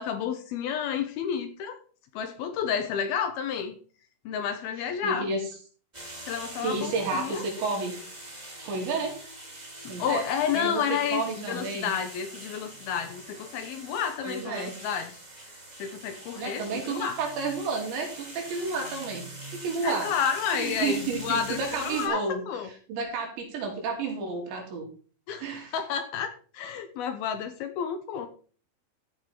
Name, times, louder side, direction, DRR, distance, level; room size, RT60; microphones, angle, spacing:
voice 1, 0.0-1.8 2.1-3.7 4.3-5.3 6.3-7.4 9.8-15.2 15.8-17.2 19.8-22.7 25.3-28.3, left 8 dB, 70° left, 8 dB, 2.6 m, -31 dB
voice 2, 4.8-5.4 6.6-8.0 8.6-9.2 9.9-10.2 10.5-10.8 11.1-11.9 14.2-14.7 16.4-19.2 19.5-20.1 20.5-22.4 22.9-24.9 25.4-25.7, right 4 dB, 80° right, 1 dB, 5.2 m, -31 dB
sound 1, 5.9-22.1, right 1 dB, 45° right, 0.5 m, -43 dB
14.5 x 6.8 x 4.4 m, 0.40 s
omnidirectional pair, 5.1 m